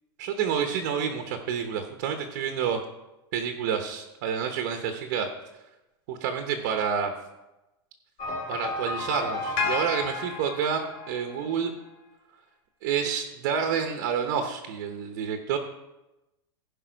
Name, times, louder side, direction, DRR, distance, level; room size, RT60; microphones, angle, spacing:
voice 1, 0.2-2.8 3.3-5.3 6.1-7.1 8.5-11.7 12.8-15.6, right 7 dB, 40° right, 6 dB, 0.9 m, -29 dB
sound 1, 8.2-11.5, left 3 dB, 35° left, 1.9 m, -32 dB
16.0 x 5.3 x 5.2 m, 0.99 s
supercardioid pair, 180°, 13 cm